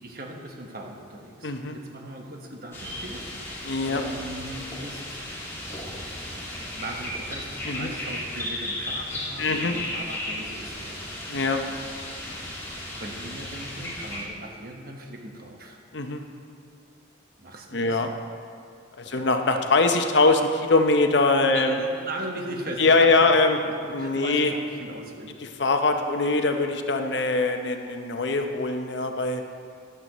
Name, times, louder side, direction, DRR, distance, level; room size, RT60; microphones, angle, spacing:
voice 1, 0.0-5.2 5.7-6.0 6.7-11.0 12.0-12.4 12.9-15.8 17.4-18.2 19.0-19.3 21.5-23.4 23.6-25.4, right 1 dB, 50° right, 1 dB, 1.3 m, -39 dB
voice 2, 1.4-1.8 3.6-4.0 7.7-7.9 9.4-9.7 11.3-11.6 15.9-16.2 17.7-18.1 19.0-21.8 22.8-23.6 23.9-24.5 25.6-29.4, left 3 dB, 60° left, 5 dB, 0.8 m, -22 dB
sound 1, 2.7-14.2, left 1 dB, 15° left, 1.9 m, -35 dB
14.0 x 11.0 x 3.1 m, 2.3 s
head